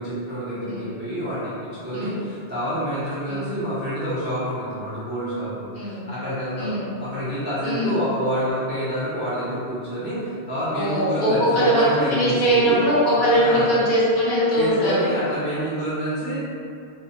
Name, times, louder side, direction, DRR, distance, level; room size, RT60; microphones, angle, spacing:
voice 1, 0.0-12.8 13.2-13.7 14.6-16.4, equal, 15° right, -12 dB, 0.4 m, -28 dB
voice 2, 0.6-1.0 1.9-2.2 3.3-3.5 5.7-6.0 6.6-6.9 7.6-8.0 10.7-14.9, equal, 50° left, -10 dB, 0.8 m, -21 dB
2.7 x 2.1 x 2.6 m, 2.5 s
omnidirectional pair, 1.2 m